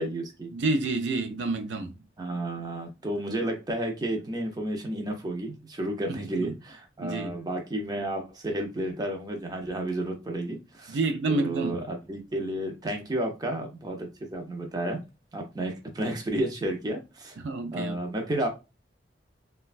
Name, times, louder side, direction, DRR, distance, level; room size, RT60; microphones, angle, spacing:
voice 1, 0.0-0.5 2.2-11.0 11.3-15.0 15.3-17.4 17.7-18.5, right 1 dB, 20° right, 0.5 m, -32 dB
voice 2, 0.5-1.9 6.1-6.5 7.0-7.3 10.9-11.8 17.4-18.0, right 2 dB, 90° right, 0.4 m, -29 dB
3.0 x 2.2 x 2.4 m
head